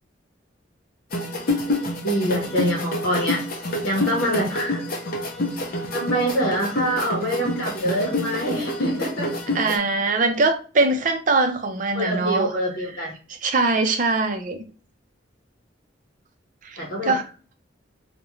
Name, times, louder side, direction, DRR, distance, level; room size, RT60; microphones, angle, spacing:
sound 1, 1.1-9.8, left 1 dB, 50° left, 0.5 m, -28 dB
voice 1, 2.0-3.4 3.8-4.8 5.9-9.3 11.9-13.1 16.8-17.2, equal, 90° left, 0.7 m, -25 dB
voice 2, 9.5-12.5 13.4-14.6 16.6-17.2, right 3 dB, 45° right, 0.4 m, -22 dB
2.3 x 2.1 x 2.9 m
head